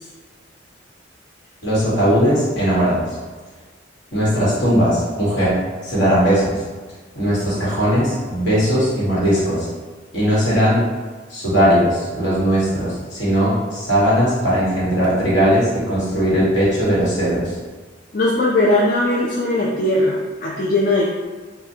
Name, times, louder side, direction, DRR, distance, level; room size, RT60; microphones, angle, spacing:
voice 1, 1.6-3.2 4.1-5.5 5.8-6.5 7.1-9.7 10.1-10.8 11.3-17.6, equal, 65° left, -8 dB, 1.5 m, -18 dB
voice 2, 18.1-21.0, left 1 dB, 45° left, -4 dB, 0.4 m, -19 dB
5.2 x 2.2 x 2.7 m, 1.4 s
head